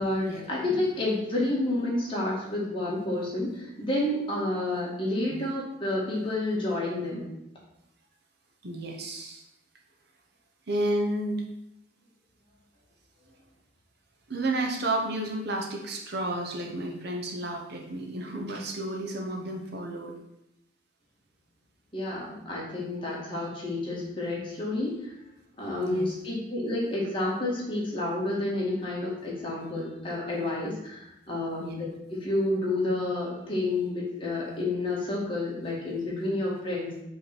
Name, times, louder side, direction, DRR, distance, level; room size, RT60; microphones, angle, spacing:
voice 1, 0.0-7.3 21.9-25.1 25.6-37.0, left 2 dB, 25° left, -5 dB, 1.8 m, -30 dB
voice 2, 8.6-9.4 10.7-11.5 14.3-20.2 25.8-26.1 31.6-31.8, right 1 dB, 50° right, 1 dB, 0.9 m, -31 dB
5.5 x 3.9 x 5.9 m, 0.84 s
head